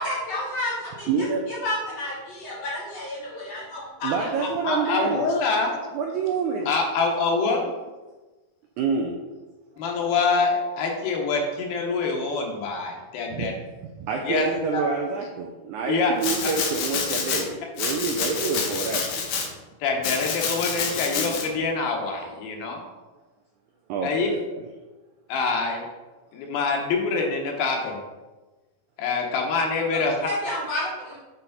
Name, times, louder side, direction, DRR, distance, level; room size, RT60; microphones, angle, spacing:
voice 1, 0.0-4.4 4.8-5.0 29.9-31.2, left 1 dB, 50° left, -6 dB, 2.8 m, -31 dB
voice 2, 1.1-1.4 4.0-5.2 5.9-6.7 8.8-9.2 13.3-13.6 14.0-19.0 23.9-24.4, right 5 dB, 80° right, 1 dB, 1.7 m, -27 dB
voice 3, 4.0-5.9 6.7-7.7 9.8-13.5 14.2-14.4 14.7-14.8 15.9-16.1 19.8-22.8 24.0-24.3 25.3-25.8 26.3-28.0 29.0-30.1, left 4 dB, 90° left, 1 dB, 2.9 m, -25 dB
Domestic sounds home sounds, 16.2-17.4 17.8-19.5 20.0-21.5, left 5 dB, 70° left, 2.3 m, -28 dB
8.1 x 4.3 x 4.0 m, 1.2 s
omnidirectional pair, 4.1 m